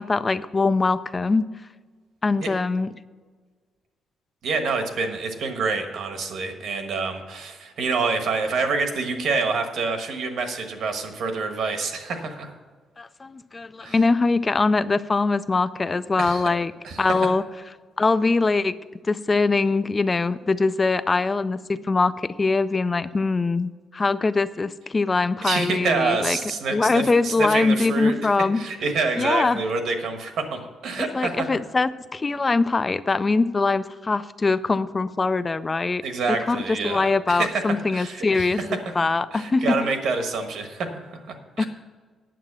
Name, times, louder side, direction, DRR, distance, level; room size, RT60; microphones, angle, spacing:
voice 1, 0.0-1.4 2.2-2.9 13.0-16.7 17.0-17.4 18.0-18.8 19.1-26.4 26.7-28.6 29.2-29.6 31.0-36.0 36.5-39.8 41.6-41.7, left 3 dB, 20° left, 15 dB, 0.3 m, -22 dB
voice 2, 4.4-12.5 13.8-14.0 16.2-16.5 16.8-17.0 25.4-28.1 28.5-31.5 36.0-38.7 39.0-41.6, right 4 dB, 60° right, 6 dB, 1.3 m, -27 dB
9.2 x 7.6 x 6.0 m, 1.5 s
cardioid pair, 180°, 0 cm